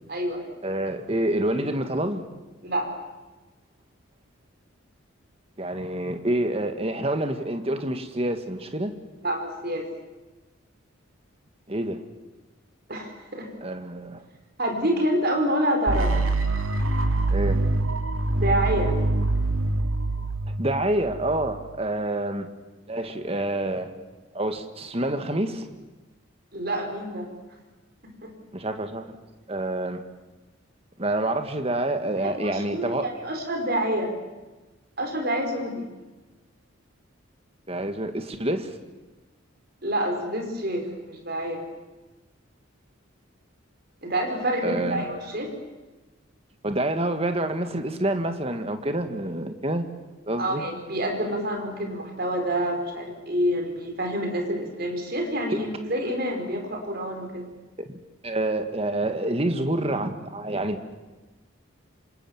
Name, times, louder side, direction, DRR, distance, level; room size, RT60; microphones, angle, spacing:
voice 1, 0.1-0.5 2.6-2.9 9.2-9.9 12.9-13.5 14.6-16.2 18.3-19.0 26.5-27.3 28.2-28.3 32.2-34.1 35.0-35.9 39.8-41.6 44.0-45.5 50.4-57.5, right 1 dB, 45° right, 3 dB, 5.0 m, -27 dB
voice 2, 0.6-2.2 5.6-8.9 11.7-12.0 13.6-14.2 17.3-17.6 20.6-22.5 22.9-23.9 24.3-25.7 28.5-29.2 29.5-30.0 31.0-33.1 37.7-38.7 44.6-45.1 46.6-49.9 50.3-50.6 55.5-55.6 57.9-60.8, right 1 dB, 30° right, 7 dB, 1.8 m, -27 dB
sound 1, 15.9-21.8, right 2 dB, 85° right, 2.3 m, -25 dB
27.0 x 26.5 x 7.4 m, 1.2 s
head